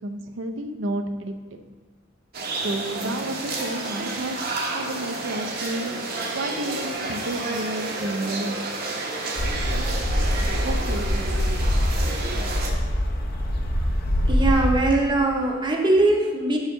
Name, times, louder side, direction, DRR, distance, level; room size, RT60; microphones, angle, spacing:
voice 1, 0.0-1.6 2.5-6.0 6.3-8.6 9.7-9.9 10.6-11.7, right 1 dB, 75° right, 7 dB, 0.5 m, -31 dB
sound 1, 2.3-12.7, right 2 dB, 50° right, 0.8 m, -30 dB
sound 2, 9.4-14.8, equal, 55° left, 0.7 m, -24 dB
voice 2, 14.3-16.6, right 2 dB, 25° right, 1 dB, 0.7 m, -21 dB
6.3 x 5.2 x 3.7 m, 1.5 s
head